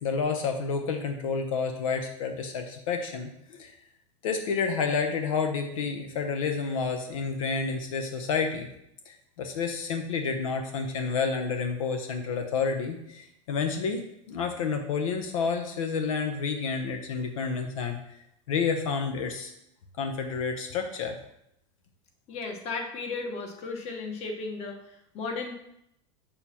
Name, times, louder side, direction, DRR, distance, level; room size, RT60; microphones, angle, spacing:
voice 1, 0.0-3.8 4.2-8.7 9.1-18.0 18.5-19.5 20.0-21.2, left 5 dB, 85° left, 5 dB, 0.8 m, -30 dB
voice 2, 22.3-25.5, left 3 dB, 40° left, 3 dB, 1.3 m, -35 dB
7.1 x 6.6 x 2.9 m, 0.77 s
supercardioid pair, 125°, 17 cm